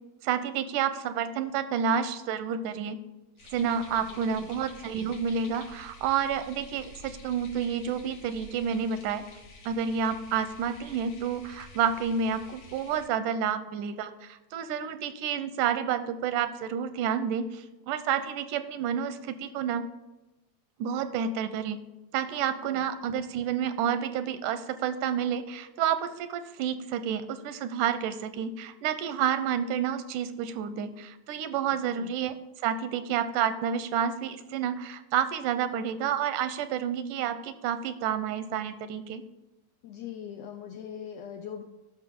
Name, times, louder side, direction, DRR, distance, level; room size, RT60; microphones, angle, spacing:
voice 1, 0.2-3.0 3.5-9.3 9.7-19.9 20.8-21.8 22.1-32.3 32.6-39.2, right 8 dB, 85° right, 12 dB, 2.2 m, -29 dB
sound 1, 3.4-13.0, left 2 dB, 60° left, 2.6 m, -49 dB
voice 2, 4.0-4.5 22.7-22.8 31.8-32.1 39.8-41.6, left 8 dB, 85° left, 5 dB, 1.5 m, -41 dB
12.5 x 5.9 x 3.7 m, 1.0 s
omnidirectional pair, 3.6 m